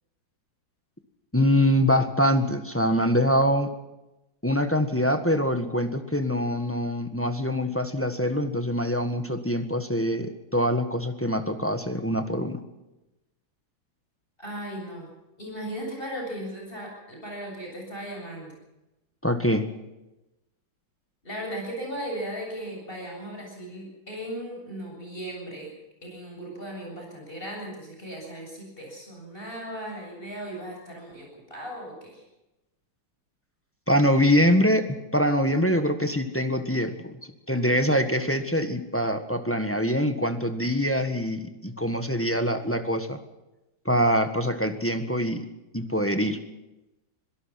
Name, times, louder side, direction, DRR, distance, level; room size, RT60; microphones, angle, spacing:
voice 1, 1.3-3.7 4.4-12.6 19.2-19.7 33.9-37.1 37.5-43.2 43.8-45.5 45.7-46.4, equal, 5° left, 7 dB, 1.4 m, -24 dB
voice 2, 14.4-15.1 15.4-18.5 21.2-25.7 26.0-32.2, equal, 25° left, 0 dB, 7.9 m, -37 dB
25.5 x 17.5 x 5.9 m, 0.97 s
omnidirectional pair, 2.1 m